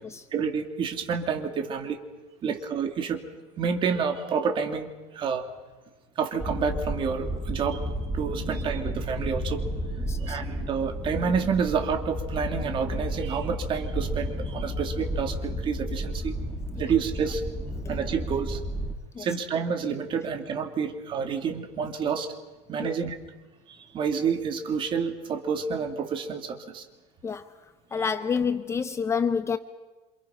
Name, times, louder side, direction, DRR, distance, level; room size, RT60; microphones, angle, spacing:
voice 1, 0.3-2.0 2.4-3.2 3.6-5.5 6.2-9.7 10.2-16.3 16.8-17.4 17.9-18.6 19.2-22.3 22.7-23.2 23.7-26.8 28.0-28.1, right 6 dB, 35° right, 2.8 m, -29 dB
sound 1, 6.4-18.9, equal, 5° left, 2.3 m, -32 dB
voice 2, 10.1-10.4 19.1-19.3 22.8-22.9 27.2-27.4 27.9-29.6, left 6 dB, 20° left, 0.8 m, -28 dB
28.5 x 27.0 x 5.8 m
cardioid pair, 145°, 15 cm